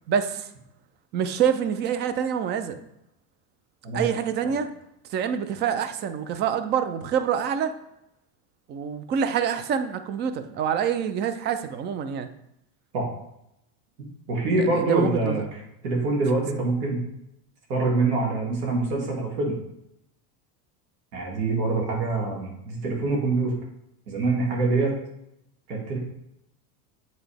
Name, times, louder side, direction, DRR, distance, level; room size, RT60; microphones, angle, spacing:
voice 1, 0.1-0.5 1.1-2.8 3.9-4.7 5.1-7.7 8.7-12.3 14.6-15.4, right 8 dB, 25° right, 10 dB, 0.4 m, -26 dB
voice 2, 14.3-17.0 17.7-19.5 21.1-23.5 24.1-24.9 25.7-26.0, right 3 dB, 85° right, -1 dB, 2.5 m, -25 dB
8.2 x 4.0 x 3.4 m, 0.81 s
supercardioid pair, 125°, 46 cm